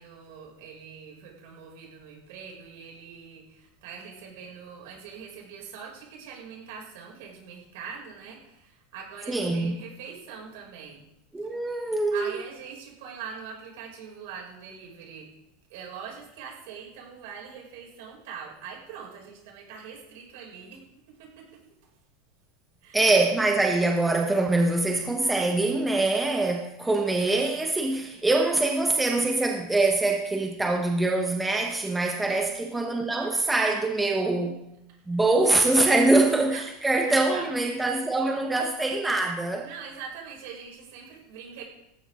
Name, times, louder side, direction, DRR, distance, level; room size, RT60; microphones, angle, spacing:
voice 1, 0.0-11.1 11.4-11.6 12.1-15.3 15.7-21.6 22.8-23.0 32.3-32.4 34.9-35.0 36.4-36.6 37.0-37.5 39.6-41.6, right 6 dB, 65° right, 0 dB, 6.5 m, -43 dB
voice 2, 9.3-9.8 11.3-12.3 22.9-34.6 35.1-39.6, right 2 dB, 5° right, 1 dB, 1.2 m, -24 dB
18.5 x 15.0 x 3.8 m, 0.85 s
supercardioid pair, 165°, 0 cm